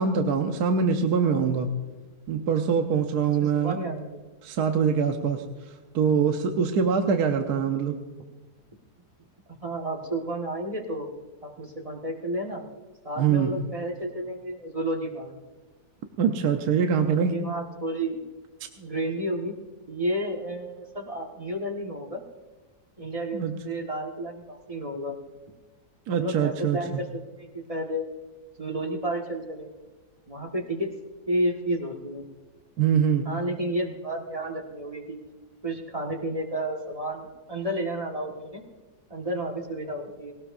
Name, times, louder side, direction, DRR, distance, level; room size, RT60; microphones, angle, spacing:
voice 1, 0.0-1.7 2.3-3.8 4.4-5.4 5.9-8.0 13.2-13.5 16.2-17.3 23.3-23.6 26.1-26.8 32.8-33.2, right 6 dB, 70° right, 5 dB, 1.4 m, -23 dB
voice 2, 3.4-4.2 9.5-11.1 11.4-12.7 13.0-15.3 17.1-18.2 18.8-19.6 19.9-22.2 23.0-25.2 26.1-28.0 28.6-29.7 30.3-30.9 31.3-32.3 33.2-35.2 35.6-38.6 39.1-40.3, right 1 dB, 20° right, 1 dB, 1.6 m, -31 dB
20.0 x 18.0 x 2.6 m, 1.3 s
omnidirectional pair, 1.8 m